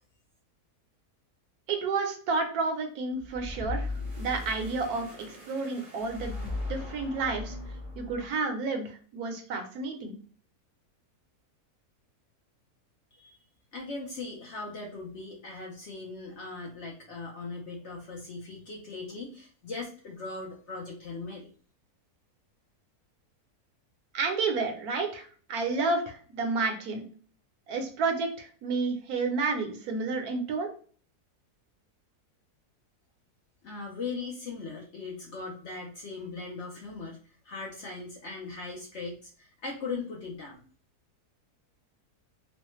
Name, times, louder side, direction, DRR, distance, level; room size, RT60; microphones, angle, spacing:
voice 1, 1.7-3.9 4.2-7.6 8.0-10.1 24.1-27.1 27.7-30.7, right 4 dB, 70° right, 4 dB, 1.1 m, -30 dB
sound 1, 3.2-8.4, left 2 dB, 25° right, 0.8 m, -38 dB
voice 2, 13.7-21.5 33.6-40.6, left 3 dB, 60° left, -1 dB, 0.8 m, -39 dB
3.1 x 2.1 x 2.9 m, 0.42 s
omnidirectional pair, 1.7 m